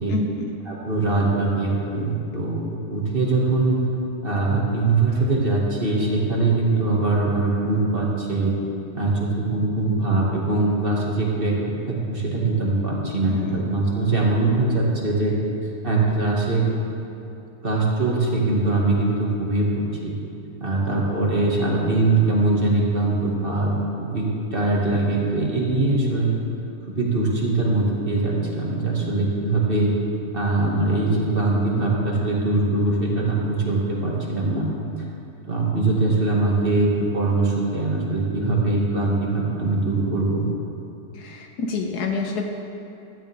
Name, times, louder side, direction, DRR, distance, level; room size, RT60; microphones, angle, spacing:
voice 1, 0.1-0.5 13.3-13.6 41.1-42.4, left 4 dB, 80° left, 2 dB, 1.4 m, -28 dB
voice 2, 0.7-2.6 2.9-3.9 4.2-8.5 8.9-11.5 11.9-15.3 15.8-16.6 17.6-20.1 20.6-23.7 24.0-26.3 27.0-29.9 30.3-34.7 35.5-36.9 37.1-40.4, right 2 dB, 35° right, -3 dB, 2.1 m, -22 dB
15.5 x 13.5 x 3.6 m, 2.8 s
omnidirectional pair, 1.7 m